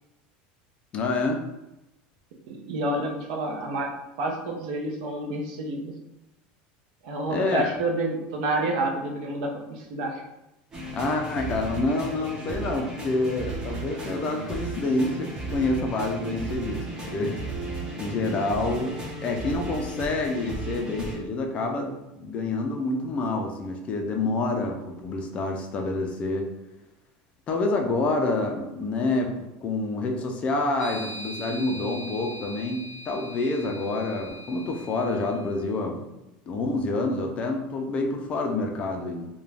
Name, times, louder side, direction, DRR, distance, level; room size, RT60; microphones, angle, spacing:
voice 1, 0.9-1.4 7.3-7.7 10.9-16.8 17.1-17.4 18.0-26.5 27.5-36.1 36.5-39.3, left 2 dB, 30° left, 2 dB, 0.4 m, -27 dB
voice 2, 2.5-3.9 4.2-5.9 7.0-10.2, right 2 dB, 70° right, 1 dB, 0.6 m, -29 dB
sound 1, 10.7-21.2, right 2 dB, 20° right, 0.6 m, -35 dB
sound 2, 30.8-35.5, right 1 dB, 45° right, 0.9 m, -41 dB
2.4 x 2.1 x 3.2 m, 0.94 s
supercardioid pair, 155°, 4 cm